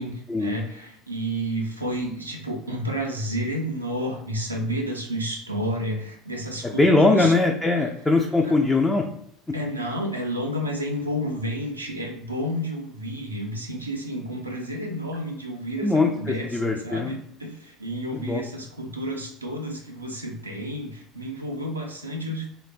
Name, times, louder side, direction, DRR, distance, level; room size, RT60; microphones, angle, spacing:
voice 1, 0.4-7.3 7.7-7.9 8.4-8.6 9.5-22.5, equal, 85° right, 0 dB, 0.4 m, -31 dB
voice 2, 6.6-9.0 15.8-17.1 18.1-18.4, left 2 dB, 10° left, 1 dB, 0.3 m, -21 dB
3.0 x 2.0 x 2.4 m, 0.71 s
figure-of-eight pair, 65°, 0 cm